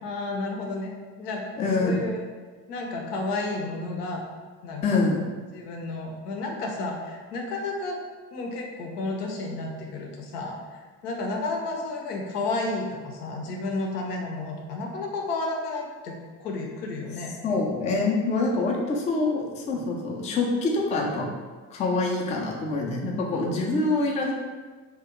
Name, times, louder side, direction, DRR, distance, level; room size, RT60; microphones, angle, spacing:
voice 1, 0.0-1.4 1.8-2.3 2.7-4.2 4.6-5.1 5.5-8.0 8.3-17.3, left 2 dB, 75° left, 1 dB, 0.6 m, -32 dB
voice 2, 1.6-2.0 4.8-5.3 17.4-21.3 21.7-24.3, left 3 dB, 15° left, -1 dB, 0.4 m, -25 dB
2.8 x 2.2 x 3.6 m, 1.4 s
figure-of-eight pair, 50°, 48 cm